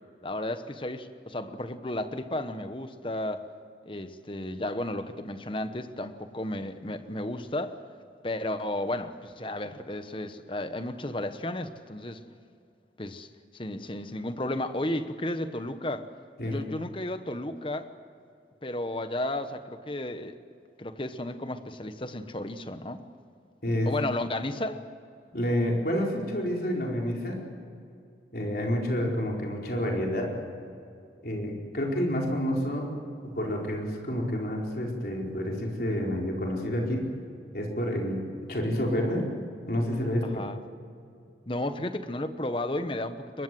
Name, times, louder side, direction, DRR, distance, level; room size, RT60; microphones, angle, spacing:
voice 1, 0.2-3.4 3.9-7.8 8.2-12.2 13.0-13.3 13.5-16.1 16.4-17.9 18.6-20.4 20.8-23.0 23.8-24.8 40.2-40.6 41.5-43.4, left 1 dB, 30° left, 10 dB, 1.1 m, -33 dB
voice 2, 23.6-23.9 25.3-27.4 28.3-30.3 31.2-32.9 33.2-37.1 37.5-39.2 39.7-40.4, equal, 55° left, -1 dB, 4.5 m, -29 dB
23.5 x 21.0 x 7.7 m, 2.5 s
head